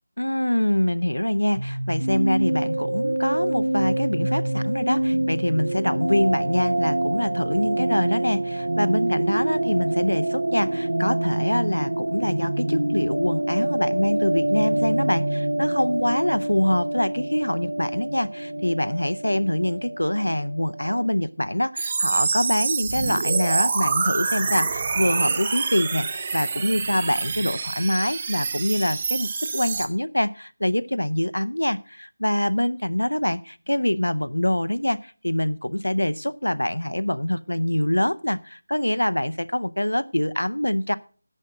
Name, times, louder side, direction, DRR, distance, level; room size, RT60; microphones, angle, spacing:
voice 1, 0.2-41.0, left 1 dB, 85° left, 15 dB, 0.5 m, -25 dB
sound 1, 1.6-21.1, right 1 dB, 70° right, 0.6 m, -26 dB
sound 2, 21.8-29.9, right 5 dB, 25° right, 0.7 m, -26 dB
10.5 x 7.6 x 4.9 m, 0.39 s
figure-of-eight pair, 165°, 0 cm